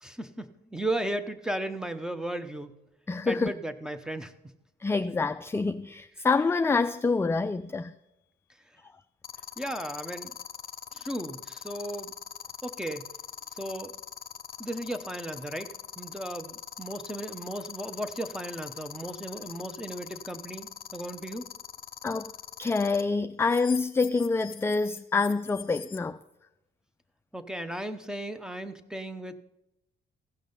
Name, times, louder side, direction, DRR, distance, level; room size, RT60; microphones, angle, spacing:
voice 1, 0.0-2.8 3.3-4.3 9.6-10.3 10.9-12.1 12.6-13.1 13.5-13.9 14.6-21.4 27.3-29.4, right 1 dB, 5° right, 0.8 m, -35 dB
voice 2, 3.1-3.5 4.8-7.9 22.0-22.3 22.6-26.2, left 4 dB, 10° left, 0.3 m, -26 dB
sound 1, 6.4-6.6 9.2-23.0 23.4-26.0, left 8 dB, 45° left, 0.7 m, -41 dB
15.5 x 6.1 x 5.4 m
cardioid pair, 90°, 20 cm